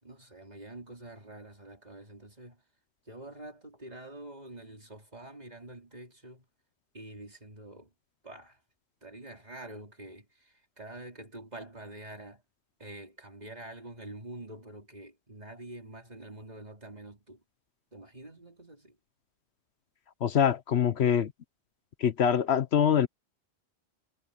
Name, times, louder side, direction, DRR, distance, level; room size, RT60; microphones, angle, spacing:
voice 1, 0.0-2.6 3.1-6.5 6.9-7.9 8.2-8.6 9.0-12.4 12.8-17.4 17.9-19.0, right 1 dB, 35° right, 4.0 m, -46 dB
voice 2, 20.2-21.3 22.0-23.1, left 8 dB, 70° left, 1.0 m, -24 dB
omnidirectional pair, 1.2 m